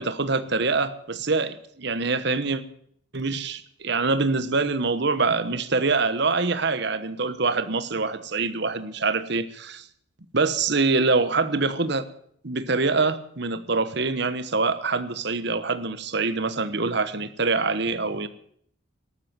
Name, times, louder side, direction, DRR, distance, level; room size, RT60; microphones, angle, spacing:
voice 1, 0.0-2.6 3.1-9.8 10.3-12.0 12.4-18.3, right 3 dB, 55° right, 13 dB, 1.1 m, -25 dB
13.5 x 12.5 x 7.4 m, 0.65 s
head